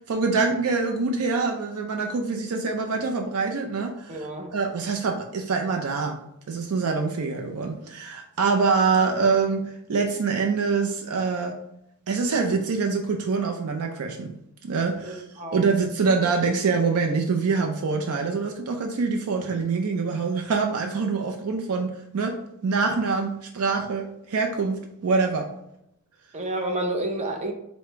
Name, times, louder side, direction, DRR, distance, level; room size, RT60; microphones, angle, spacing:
voice 1, 0.0-4.3 4.5-6.2 6.5-11.6 12.1-14.3 14.6-25.5, right 4 dB, 75° right, 3 dB, 0.5 m, -25 dB
voice 2, 4.1-4.5 15.0-15.7 26.3-27.5, right 1 dB, 30° right, 3 dB, 0.6 m, -30 dB
4.9 x 2.1 x 4.4 m, 0.79 s
head